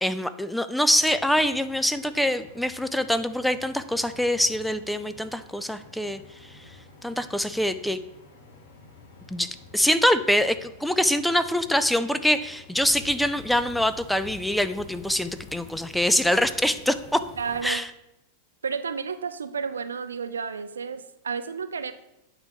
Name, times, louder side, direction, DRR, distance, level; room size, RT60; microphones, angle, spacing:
voice 1, 0.0-6.8 7.0-8.0 9.3-17.2 17.6-17.9, equal, ahead, 11 dB, 0.3 m, -24 dB
sound 1, 0.9-17.6, left 2 dB, 55° left, 1.4 m, -51 dB
sound 2, 12.7-17.7, left 6 dB, 30° left, 0.7 m, -47 dB
voice 2, 17.4-17.8 18.6-21.9, right 6 dB, 70° right, 11 dB, 0.4 m, -31 dB
8.9 x 3.4 x 5.0 m, 0.88 s
figure-of-eight pair, 90°, 0 cm